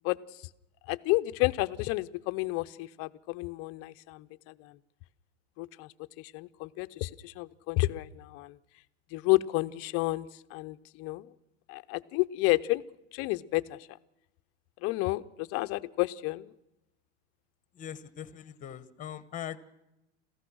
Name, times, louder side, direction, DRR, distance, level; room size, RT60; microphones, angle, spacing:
voice 1, 0.9-4.8 5.6-5.9 6.2-8.6 9.1-11.3 11.7-12.8 13.1-13.8 14.8-16.5, left 20 dB, 40° left, 13 dB, 0.7 m, -31 dB
voice 2, 17.8-19.6, left 10 dB, 20° left, 15 dB, 1.2 m, -41 dB
28.0 x 15.0 x 6.3 m, 0.90 s
supercardioid pair, 140°, 35 cm